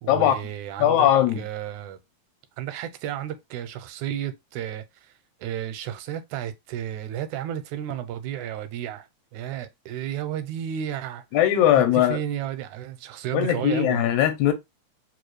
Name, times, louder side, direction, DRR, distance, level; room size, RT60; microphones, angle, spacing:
voice 1, 0.0-1.1 1.4-2.0 2.6-5.1 5.4-11.2 11.7-14.0, right 11 dB, 85° right, 1.9 m, -32 dB
voice 2, 0.8-1.4 11.3-12.2 13.3-14.5, left 11 dB, 80° left, 2.0 m, -20 dB
4.7 x 2.4 x 3.0 m
omnidirectional pair, 3.4 m